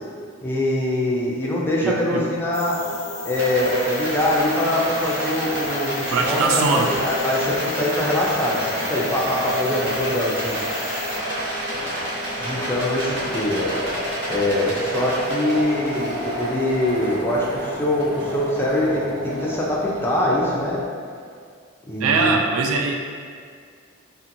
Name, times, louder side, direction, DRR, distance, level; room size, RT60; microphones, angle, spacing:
voice 1, 0.4-2.8 3.2-10.6 12.4-13.7 14.3-20.8 21.9-22.3, left 1 dB, 10° left, -5 dB, 0.4 m, -23 dB
voice 2, 1.8-2.2 6.1-6.9 22.0-22.9, right 4 dB, 75° right, 5 dB, 0.3 m, -21 dB
sound 1, 2.4-20.9, equal, 25° right, 0.9 m, -33 dB
sound 2, 2.5-11.2, left 8 dB, 80° left, 0.3 m, -37 dB
Rattle, 3.3-20.7, equal, 60° right, 0.8 m, -30 dB
2.7 x 2.5 x 2.6 m, 2.1 s
head